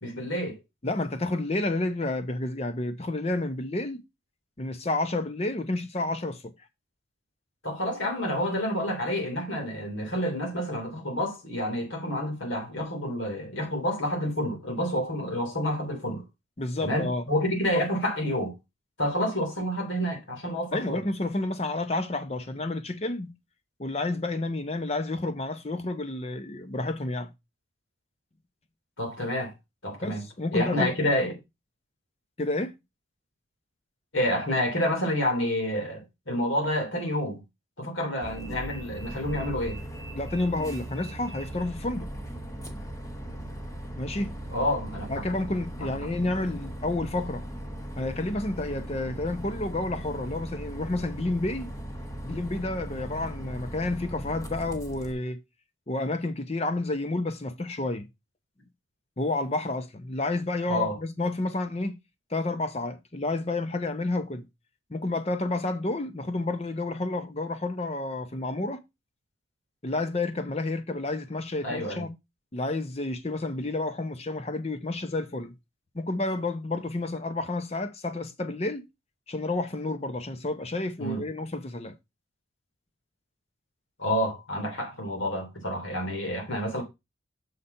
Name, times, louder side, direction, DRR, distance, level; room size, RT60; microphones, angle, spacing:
voice 1, 0.0-0.6 7.6-16.2 16.8-18.5 19.0-21.0 29.0-29.5 29.8-30.2 30.5-31.4 34.1-37.4 37.8-39.8 44.5-45.4 45.8-46.3 60.7-61.0 71.6-72.0 81.0-81.2 84.0-86.8, equal, 80° left, 3.0 m, -29 dB
voice 2, 0.8-4.0 4.6-6.5 16.6-17.2 20.7-23.3 23.8-27.3 30.0-30.9 32.4-32.8 40.1-42.1 44.0-44.4 45.1-47.4 48.0-51.7 52.2-55.4 55.9-58.1 59.2-61.9 62.3-64.4 64.9-68.8 69.8-72.1 72.5-75.5 75.9-78.8 79.3-81.9, left 2 dB, 30° left, 0.7 m, -30 dB
Bus, 38.2-55.1, right 1 dB, 15° left, 1.1 m, -38 dB
6.7 x 4.2 x 5.4 m
head